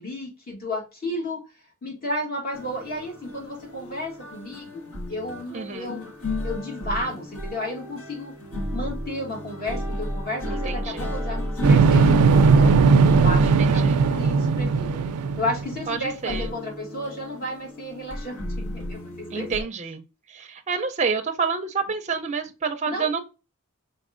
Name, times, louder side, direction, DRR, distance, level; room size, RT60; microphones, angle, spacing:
voice 1, 0.0-1.4 1.8-6.1 6.4-8.3 8.7-12.7 13.1-15.0 15.4-19.7 22.9-23.1, left 1 dB, 45° left, 2.0 m, -33 dB
sound 1, 2.5-19.6, left 1 dB, 75° left, 1.4 m, -33 dB
voice 2, 5.5-6.0 10.4-11.1 13.4-14.1 15.9-16.5 19.3-20.0 20.3-23.2, right 5 dB, 30° right, 0.5 m, -29 dB
sound 2, 11.6-15.8, right 5 dB, 85° right, 0.4 m, -18 dB
5.1 x 4.0 x 2.5 m
head